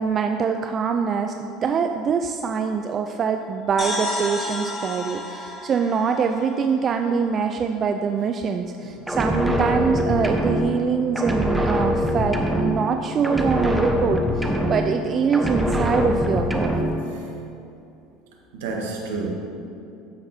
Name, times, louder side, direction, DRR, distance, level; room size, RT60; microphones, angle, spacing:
voice 1, 0.0-1.3 1.6-16.9, right 6 dB, 40° right, 5 dB, 0.4 m, -24 dB
sound 1, 3.8-7.4, left 1 dB, 25° left, 1.7 m, -32 dB
sound 2, 9.1-10.9 11.1-13.0 13.2-15.1 15.3-17.0, equal, 5° right, 0.9 m, -23 dB
voice 2, 18.5-19.3, right 3 dB, 75° right, 0 dB, 1.2 m, -31 dB
12.5 x 5.8 x 2.8 m, 2.7 s
hypercardioid pair, 75°, 0 cm